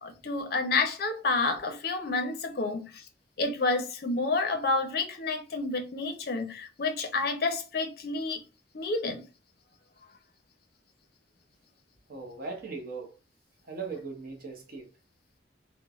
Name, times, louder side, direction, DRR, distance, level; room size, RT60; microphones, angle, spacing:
voice 1, 0.0-3.0 3.4-8.4 8.7-9.2, left 3 dB, 55° left, 0.5 m, -29 dB
voice 2, 12.1-13.1 13.7-14.9, right 4 dB, 50° right, 0.7 m, -39 dB
3.1 x 2.1 x 2.3 m
head